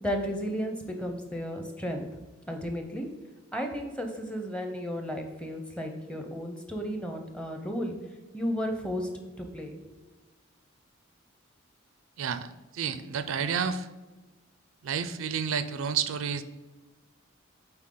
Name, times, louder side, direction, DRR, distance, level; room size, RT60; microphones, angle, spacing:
voice 1, 0.0-2.0 2.5-3.1 3.5-7.9 8.3-9.1 9.4-9.9, equal, 5° left, 4 dB, 0.7 m, -33 dB
voice 2, 12.2-13.9 14.8-16.4, right 7 dB, 80° right, 12 dB, 0.4 m, -30 dB
8.7 x 4.0 x 3.8 m, 1.2 s
head